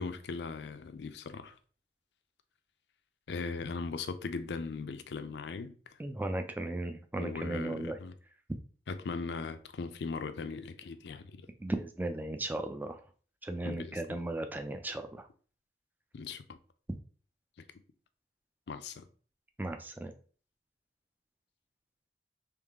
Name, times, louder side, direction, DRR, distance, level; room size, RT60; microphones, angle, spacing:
voice 1, 0.0-1.6 3.3-6.0 7.2-8.1 8.9-11.5 13.6-14.2 16.1-16.6 17.6-17.7 18.7-19.0, left 4 dB, 75° left, 0.4 m, -39 dB
voice 2, 6.0-8.0 11.6-13.0 13.4-15.3 19.6-20.1, right 1 dB, 10° right, 0.4 m, -36 dB
3.7 x 3.1 x 3.4 m
head